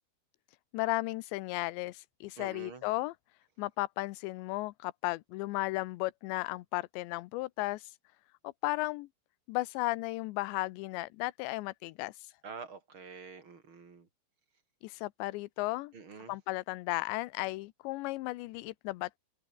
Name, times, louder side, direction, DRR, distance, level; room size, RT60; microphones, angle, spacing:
voice 1, 0.7-3.2 3.6-8.0 8.6-9.1 9.5-12.4 14.8-15.9 16.3-19.2, left 21 dB, 85° left, 3.0 m, -35 dB
voice 2, 2.4-2.8 12.4-14.1 15.9-16.3, right 5 dB, 30° right, 3.4 m, -47 dB
omnidirectional pair, 5.1 m